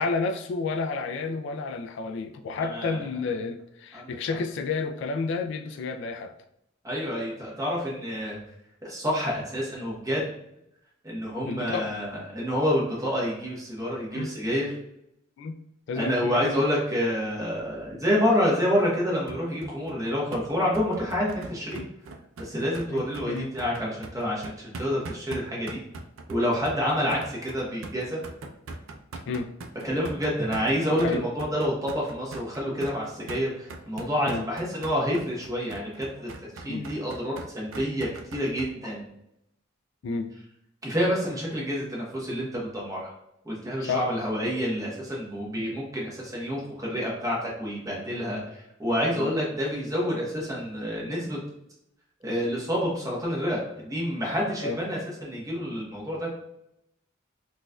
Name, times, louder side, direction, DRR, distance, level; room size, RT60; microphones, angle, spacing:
voice 1, 0.0-6.3 11.4-11.9 14.1-14.3 15.4-15.6 15.9-16.5 21.7-21.9 22.9-23.5 29.3-29.5 31.0-31.2 34.3-34.5 36.7-36.9 40.0-40.3 43.8-44.1 49.1-49.3 54.6-54.8, left 4 dB, 65° left, 6 dB, 0.3 m, -31 dB
voice 2, 6.8-8.4 8.8-10.3 11.0-14.7 15.9-21.8 22.4-25.8 26.3-28.2 29.8-39.1 40.8-43.1 43.4-51.4 52.2-56.3, equal, 15° right, -4 dB, 1.0 m, -28 dB
sound 1, 19.3-38.7, right 2 dB, 85° right, 0.4 m, -41 dB
4.0 x 2.5 x 2.2 m, 0.80 s
head